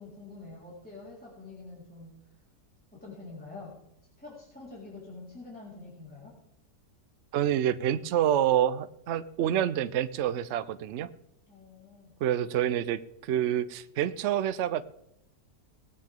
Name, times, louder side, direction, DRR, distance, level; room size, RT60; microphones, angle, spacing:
voice 1, 0.0-2.1 2.9-3.8 4.2-6.4 11.5-12.1, left 3 dB, 5° left, -7 dB, 4.2 m, -46 dB
voice 2, 7.3-11.1 12.2-14.8, right 11 dB, 85° right, 13 dB, 0.6 m, -27 dB
19.5 x 9.2 x 3.7 m, 0.77 s
omnidirectional pair, 1.8 m